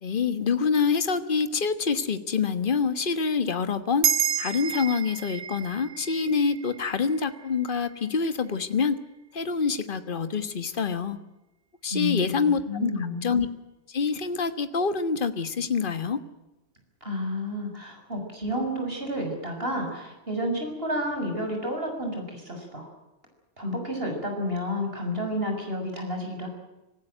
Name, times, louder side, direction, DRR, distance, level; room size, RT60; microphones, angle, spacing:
voice 1, 0.0-4.1 4.4-9.0 9.3-11.2 11.8-13.5 13.9-16.2, left 5 dB, 45° left, 11 dB, 1.5 m, -26 dB
sound 1, 4.0-8.7, right 8 dB, 85° right, 1.3 m, -31 dB
voice 2, 11.9-13.2 17.0-22.9 23.6-26.5, equal, 55° right, 3 dB, 7.0 m, -30 dB
26.0 x 15.5 x 9.1 m, 1.0 s
omnidirectional pair, 1.2 m